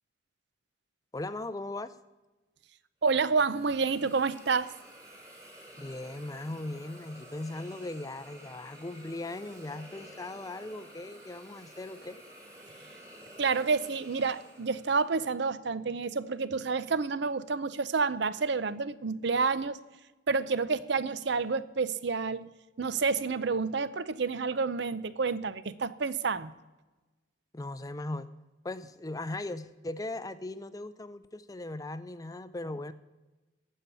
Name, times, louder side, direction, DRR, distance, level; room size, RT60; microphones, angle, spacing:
voice 1, 1.1-1.9 5.8-12.2 12.8-12.9 27.5-28.3 28.6-32.9, left 2 dB, 15° left, 14 dB, 0.4 m, -38 dB
voice 2, 3.0-4.7 13.4-19.8 20.3-22.5 22.8-26.5, right 4 dB, 55° right, 16 dB, 0.6 m, -29 dB
Hiss, 3.1-15.2, equal, 15° right, 2.1 m, -51 dB
15.0 x 5.5 x 9.1 m, 1.1 s
head